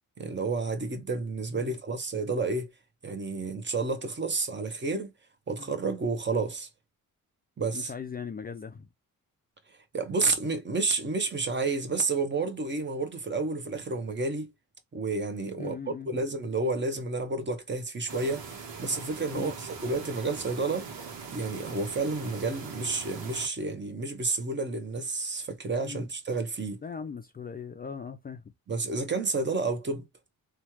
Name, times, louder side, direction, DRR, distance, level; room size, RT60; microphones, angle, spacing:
voice 1, 0.2-2.7 3.0-5.1 5.5-6.7 7.6-7.9 9.9-14.5 14.9-20.9 21.3-26.8 28.7-30.0, right 3 dB, 30° right, 0.9 m, -30 dB
voice 2, 7.7-8.9 15.6-16.2 19.3-19.5 25.8-26.1 26.8-28.4, left 6 dB, 25° left, 0.4 m, -39 dB
sound 1, 18.1-23.5, right 5 dB, 80° right, 1.1 m, -41 dB
3.1 x 2.3 x 2.8 m
cardioid pair, 95°, 36 cm